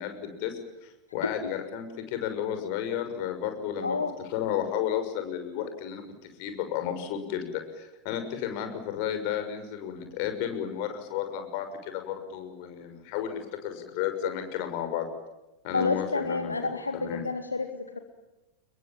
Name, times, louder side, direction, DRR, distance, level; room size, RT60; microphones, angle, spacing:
voice 1, 0.0-4.0 4.3-6.0 6.4-15.1 15.6-16.7 17.0-17.2, left 9 dB, 45° left, 7 dB, 6.4 m, -33 dB
voice 2, 3.8-4.1 15.7-18.0, left 3 dB, 80° left, 7 dB, 2.1 m, -29 dB
30.0 x 22.5 x 7.5 m, 1.0 s
figure-of-eight pair, 90°, 0 cm